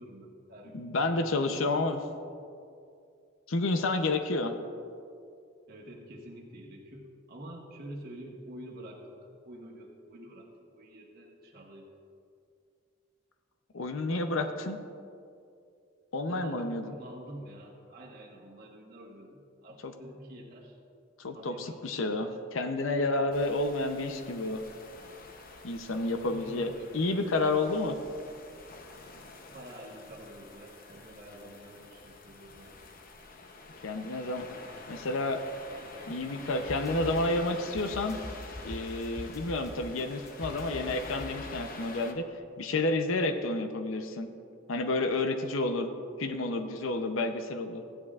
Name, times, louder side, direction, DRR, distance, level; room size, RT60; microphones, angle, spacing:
voice 1, 0.0-1.7 2.0-2.5 5.7-11.9 16.3-20.8 21.3-22.4 26.3-27.2 29.5-32.7, right 1 dB, 50° right, -2 dB, 1.2 m, -48 dB
voice 2, 0.7-2.0 3.5-4.5 13.7-14.8 16.1-16.8 19.8-19.9 21.2-24.6 25.6-28.0 33.8-34.4 34.9-35.4 36.1-38.2 38.6-42.3 42.6-44.3 44.7-45.9 46.2-47.8, left 2 dB, 90° left, 7 dB, 0.6 m, -30 dB
sound 1, 23.3-42.1, left 3 dB, 45° left, 0.7 m, -47 dB
sound 2, 36.6-41.9, left 1 dB, 15° left, 0.4 m, -44 dB
15.0 x 9.5 x 2.4 m, 2.4 s
head